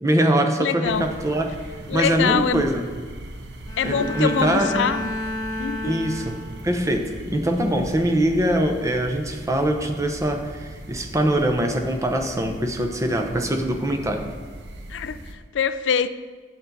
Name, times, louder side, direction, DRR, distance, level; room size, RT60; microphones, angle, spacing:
voice 1, 0.0-1.5 1.9-2.8 3.8-4.8 5.8-14.3, right 1 dB, 15° right, 4 dB, 0.8 m, -23 dB
voice 2, 0.6-1.2 1.9-2.6 3.8-5.1 5.6-6.0 14.9-16.1, left 7 dB, 75° left, 13 dB, 0.4 m, -24 dB
sound 1, 0.8-15.3, right 1 dB, 65° right, 1.0 m, -39 dB
Bowed string instrument, 3.7-6.9, left 1 dB, 20° left, 1.1 m, -31 dB
9.5 x 7.8 x 4.0 m, 1.5 s
head